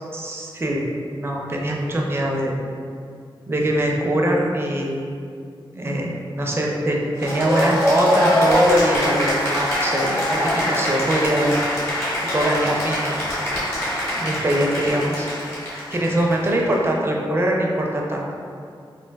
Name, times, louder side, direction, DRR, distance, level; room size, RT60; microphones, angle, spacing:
voice 1, 0.1-0.8 1.2-2.5 3.5-5.1 5.7-11.5 12.3-13.2 14.2-15.3 15.9-18.2, right 1 dB, 25° right, -1 dB, 0.4 m, -22 dB
Cheering / Applause, 7.2-16.7, left 1 dB, 30° left, 0.9 m, -23 dB
4.4 x 2.5 x 2.2 m, 2.3 s
wide cardioid pair, 155°, 9 cm